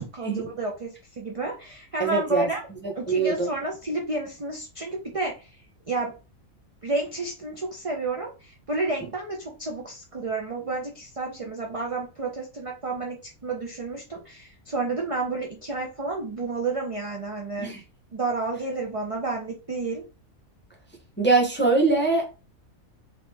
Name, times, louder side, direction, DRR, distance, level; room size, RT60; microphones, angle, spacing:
voice 1, 0.0-2.6 2.9-5.6 5.9-6.1 6.8-13.2 13.4-17.7 18.1-20.0, right 3 dB, 60° right, 0.3 m, -30 dB
voice 2, 2.0-2.5 3.1-3.5 17.6-17.8 21.2-22.3, right 3 dB, 15° left, 0.5 m, -22 dB
2.9 x 2.8 x 3.3 m
omnidirectional pair, 1.5 m